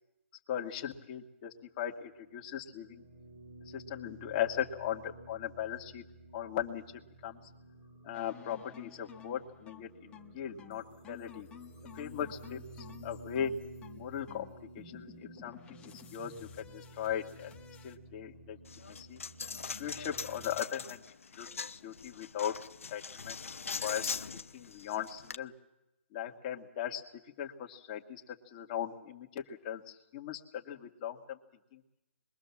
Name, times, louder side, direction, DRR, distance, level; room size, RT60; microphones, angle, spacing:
voice 1, 0.5-3.0 3.7-6.0 6.3-6.8 7.2-7.4 8.0-11.5 11.9-13.5 14.0-15.1 15.4-17.5 17.8-18.6 18.9-19.2 19.7-21.0 21.4-21.5 21.8-22.5 22.9-23.4 23.8-24.2 24.5-25.5 26.1-27.0 27.4-31.4 31.7-31.8, left 10 dB, 35° left, 3 dB, 2.2 m, -38 dB
sound 1, 1.9-20.6, right 2 dB, 40° right, 4.6 m, -53 dB
sound 2, 8.1-18.0, left 9 dB, 15° left, 1.4 m, -53 dB
Coin (dropping), 18.7-25.4, left 5 dB, 80° left, 0.9 m, -42 dB
26.5 x 22.5 x 7.4 m, 0.93 s
hypercardioid pair, 150°, 7 cm